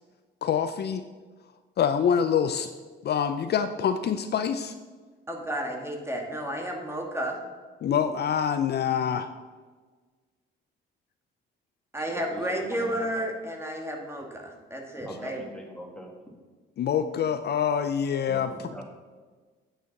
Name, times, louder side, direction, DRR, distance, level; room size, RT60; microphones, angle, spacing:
voice 1, 0.4-1.0 1.8-2.7 3.0-4.7 7.8-9.3 16.8-18.5, left 8 dB, 55° left, 10 dB, 0.5 m, -25 dB
voice 2, 5.3-7.4 11.9-15.4, right 1 dB, 15° right, 1 dB, 2.1 m, -32 dB
voice 3, 12.1-13.0 15.0-16.2 18.3-18.8, left 1 dB, 5° left, 0 dB, 2.3 m, -42 dB
8.9 x 6.8 x 5.9 m, 1.4 s
cardioid pair, 90°, 20 cm